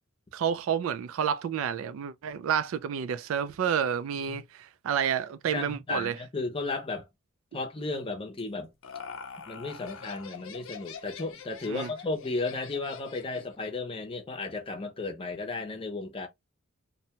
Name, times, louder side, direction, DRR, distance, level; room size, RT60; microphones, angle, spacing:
voice 1, 0.3-6.2 11.7-11.9, right 8 dB, 70° right, 0.3 m, -30 dB
voice 2, 5.5-7.1 7.5-8.7 9.5-16.3, left 3 dB, 25° left, 0.6 m, -34 dB
Laughter, 8.4-13.5, left 6 dB, 65° left, 0.5 m, -44 dB
2.7 x 2.1 x 2.8 m
head